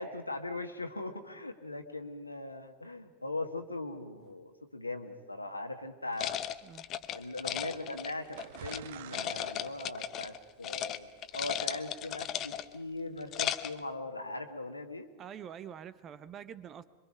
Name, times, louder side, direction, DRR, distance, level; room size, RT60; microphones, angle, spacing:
voice 1, 0.0-6.4 7.1-11.1 11.3-15.1, left 2 dB, 85° left, 6 dB, 1.6 m, -40 dB
sound 1, 6.2-8.8 9.1-10.4 10.6-11.0 11.2-12.8 13.2-13.8, left 11 dB, 35° left, 0.8 m, -36 dB
sound 2, 7.7-12.5, right 10 dB, 55° right, 0.8 m, -50 dB
voice 2, 15.2-16.8, right 9 dB, 30° right, 16 dB, 0.9 m, -46 dB
26.5 x 23.5 x 5.2 m, 1.3 s
figure-of-eight pair, 90°, 0 cm